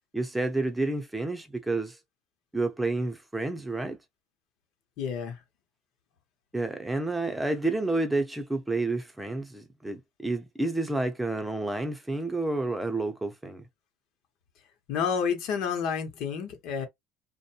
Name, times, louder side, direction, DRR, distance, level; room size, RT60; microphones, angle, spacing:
voice 1, 0.1-2.0 2.5-4.0 6.5-13.6, right 2 dB, 5° right, 0.8 m, -30 dB
voice 2, 5.0-5.4 14.9-16.9, left 6 dB, 65° left, 0.9 m, -29 dB
2.6 x 2.2 x 2.7 m
supercardioid pair, 115°, 0 cm